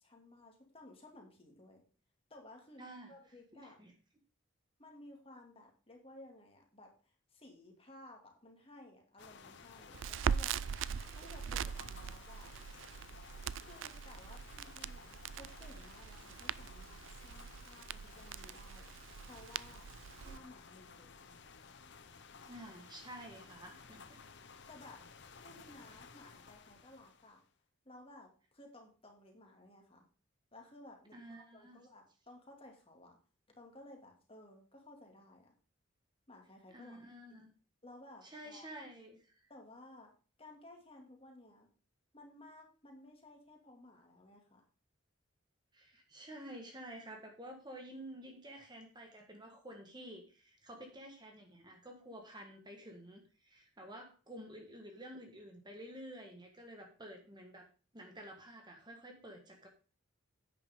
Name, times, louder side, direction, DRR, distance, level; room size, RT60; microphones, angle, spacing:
voice 1, 0.0-1.8 2.3-2.8 3.1-3.8 4.8-10.6 11.1-12.5 13.6-18.9 19.2-19.9 20.2-21.3 24.7-25.0 25.4-27.4 27.8-30.1 30.5-33.2 33.6-35.6 36.3-37.0 37.8-38.7 39.5-40.1 40.4-41.7 42.1-44.6, left 1 dB, 30° left, 2 dB, 2.4 m, -57 dB
voice 2, 2.8-3.1 3.5-3.9 22.5-24.2 31.1-31.9 36.7-37.5 38.2-39.4 45.7-57.7 57.9-59.7, right 1 dB, 20° right, 3 dB, 1.5 m, -51 dB
sound 1, 9.2-27.5, left 5 dB, 55° left, 1.0 m, -56 dB
Crackle, 9.9-20.4, right 7 dB, 65° right, 0.4 m, -41 dB
10.5 x 8.8 x 3.7 m, 0.37 s
head